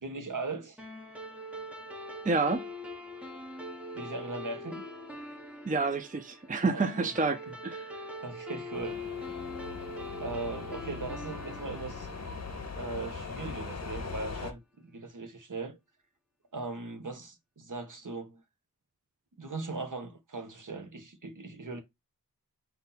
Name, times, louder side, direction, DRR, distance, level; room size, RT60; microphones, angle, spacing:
voice 1, 0.0-0.8 3.9-4.8 6.7-7.1 8.2-9.4 10.2-12.1 12.8-14.6 14.9-15.8 16.5-18.4 19.4-21.8, right 3 dB, 55° right, 1.1 m, -39 dB
sound 1, 0.8-13.5, left 1 dB, 5° right, 1.1 m, -43 dB
voice 2, 2.2-2.7 5.6-7.9, right 3 dB, 20° right, 0.5 m, -29 dB
sound 2, 8.7-14.5, left 4 dB, 45° left, 0.8 m, -40 dB
4.1 x 2.7 x 3.9 m
wide cardioid pair, 65°, 36 cm